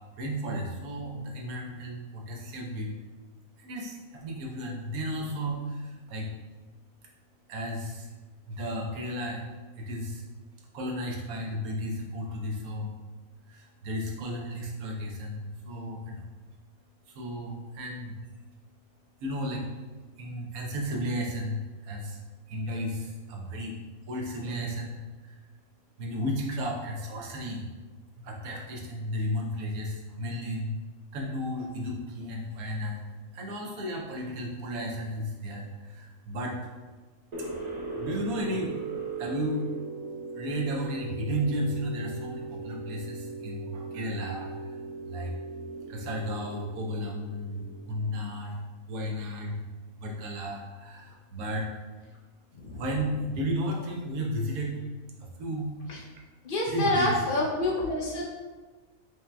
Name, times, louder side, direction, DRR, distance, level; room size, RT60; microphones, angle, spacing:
voice 1, 0.2-2.9 3.6-6.3 7.5-8.1 8.5-9.4 9.8-10.2 10.7-12.9 13.5-16.2 17.1-18.2 19.2-19.7 20.2-22.2 22.5-23.8 24.1-25.4 26.0-27.7 28.2-30.8 31.1-33.0 33.3-36.6 37.4-38.8 39.2-39.7 40.3-44.8 45.0-45.3 45.9-48.6 48.9-49.7 50.0-51.7 52.7-54.8 55.2-55.7 56.7-57.2, equal, 80° right, -1 dB, 1.2 m, -33 dB
sound 1, 37.3-48.2, right 4 dB, 40° right, 0.7 m, -39 dB
voice 2, 56.4-58.2, left 2 dB, 80° left, -2 dB, 0.4 m, -28 dB
4.8 x 2.8 x 2.2 m, 1.3 s
omnidirectional pair, 1.5 m